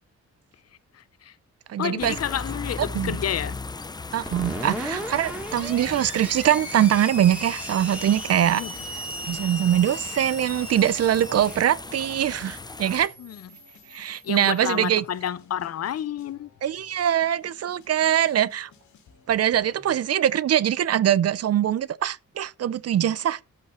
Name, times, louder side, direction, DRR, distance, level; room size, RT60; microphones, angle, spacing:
voice 1, 0.9-1.3 1.8-3.6 8.5-8.8 13.2-13.5 14.2-16.5, left 10 dB, 55° left, 0.6 m, -30 dB
voice 2, 1.7-2.1 2.9-3.1 4.1-8.6 9.3-13.1 13.9-15.0 16.6-18.7 19.3-23.4, right 10 dB, 55° right, 0.6 m, -23 dB
sound 1, 2.0-13.1, left 3 dB, 15° left, 0.4 m, -38 dB
Screech, 4.2-14.7, equal, 5° right, 2.2 m, -37 dB
sound 2, 7.1-20.0, left 6 dB, 85° left, 3.2 m, -57 dB
13.0 x 5.5 x 4.3 m
wide cardioid pair, 130°, 29 cm